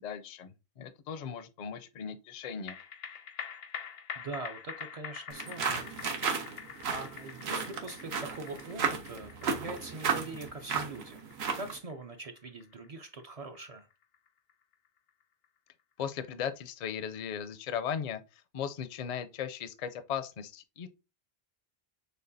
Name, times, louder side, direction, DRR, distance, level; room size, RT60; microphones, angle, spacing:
voice 1, 0.0-2.8 16.0-20.9, left 8 dB, 55° left, 0.5 m, -37 dB
sound 1, 2.4-15.1 15.4-15.5, left 7 dB, 75° left, 0.8 m, -46 dB
voice 2, 4.2-6.3 6.9-11.3 11.6-13.9, right 3 dB, 50° right, 0.5 m, -43 dB
sound 2, 5.3-11.8, right 6 dB, 90° right, 1.0 m, -34 dB
6.5 x 2.3 x 2.6 m
omnidirectional pair, 1.0 m